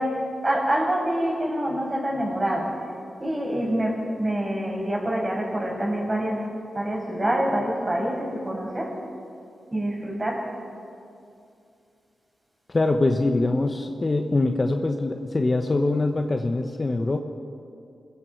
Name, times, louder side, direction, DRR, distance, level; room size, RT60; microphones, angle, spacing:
voice 1, 0.0-2.7 3.2-6.5 6.7-8.9 9.7-10.5, right 1 dB, 20° right, -1 dB, 5.9 m, -26 dB
voice 2, 12.7-17.2, left 2 dB, 35° left, 5 dB, 1.2 m, -23 dB
27.5 x 21.5 x 4.8 m, 2.5 s
wide cardioid pair, 95°, 0 cm